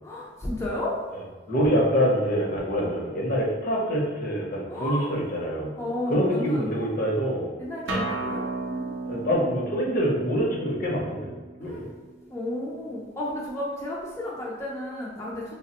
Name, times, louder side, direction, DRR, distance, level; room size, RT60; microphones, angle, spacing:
voice 1, 0.0-1.0 4.7-5.1 5.7-6.7 7.6-9.2 11.6-11.9 12.3-15.6, left 1 dB, 15° left, -5 dB, 0.4 m, -33 dB
voice 2, 1.5-5.7 6.1-7.5 9.1-11.3 11.6-11.8, equal, 50° left, -3 dB, 0.7 m, -25 dB
Acoustic guitar, 7.9-13.1, right 2 dB, 70° right, 0.6 m, -35 dB
3.2 x 2.1 x 2.8 m, 1.4 s
head